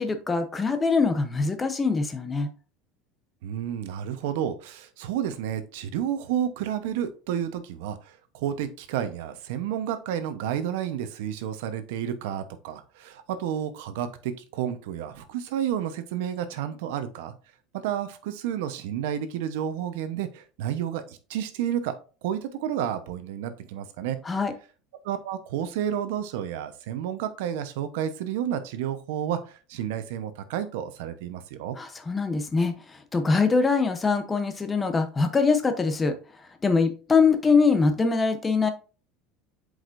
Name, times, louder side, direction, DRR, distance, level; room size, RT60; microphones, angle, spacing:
voice 1, 0.0-2.5 24.3-24.5 31.8-36.1 36.6-38.7, left 4 dB, 15° left, 8 dB, 0.8 m, -23 dB
voice 2, 3.4-17.3 17.7-21.9 22.2-24.2 25.0-31.8, right 10 dB, 80° right, 10 dB, 0.9 m, -31 dB
7.8 x 4.9 x 2.6 m, 0.36 s
cardioid pair, 165°, 0 cm